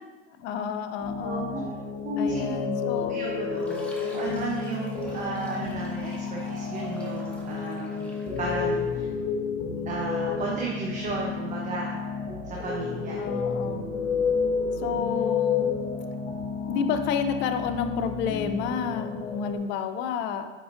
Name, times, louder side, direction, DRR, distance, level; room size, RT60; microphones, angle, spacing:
voice 1, 0.4-1.4 2.2-3.2 13.2-13.9 14.8-15.7 16.7-20.4, left 6 dB, 30° left, 8 dB, 0.4 m, -30 dB
sound 1, 1.0-19.6, left 5 dB, 45° left, 1.7 m, -31 dB
voice 2, 1.2-1.6 2.0-2.6 3.1-9.1 9.9-12.0 12.4-13.2, right 2 dB, 20° right, -3 dB, 0.8 m, -33 dB
Fill (with liquid), 3.6-8.7, equal, 5° left, 1.0 m, -47 dB
8.6 x 5.0 x 2.5 m, 1.3 s
hypercardioid pair, 115°, 39 cm